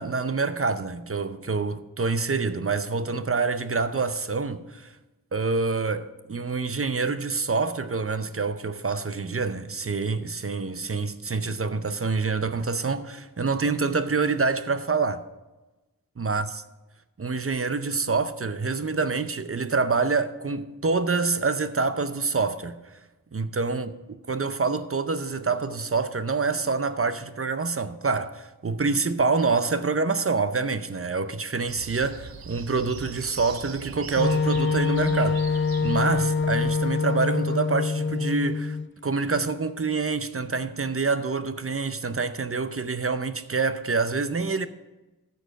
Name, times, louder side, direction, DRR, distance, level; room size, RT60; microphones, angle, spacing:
voice 1, 0.0-4.9 5.3-15.2 16.2-16.6 17.2-22.8 23.3-23.9 24.3-35.4 35.8-38.8 39.0-44.7, right 4 dB, 40° right, 0.6 m, -26 dB
sound 1, 31.7-37.0, right 7 dB, 85° right, 0.6 m, -42 dB
Wind instrument woodwind instrument, 34.2-38.9, left 4 dB, 35° left, 0.5 m, -25 dB
13.5 x 4.6 x 6.3 m
wide cardioid pair, 50°, 35 cm